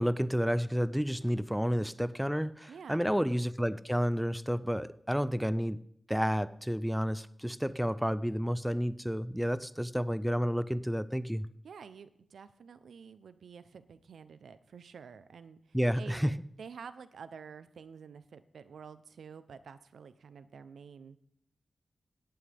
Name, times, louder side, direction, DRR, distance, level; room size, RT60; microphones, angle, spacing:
voice 1, 0.0-5.8 6.1-11.5 15.7-16.3, equal, ahead, 0.4 m, -30 dB
voice 2, 2.7-3.2 11.6-16.3 16.6-21.2, right 6 dB, 85° right, 0.8 m, -49 dB
17.0 x 11.5 x 3.6 m
wide cardioid pair, 125°, 0 cm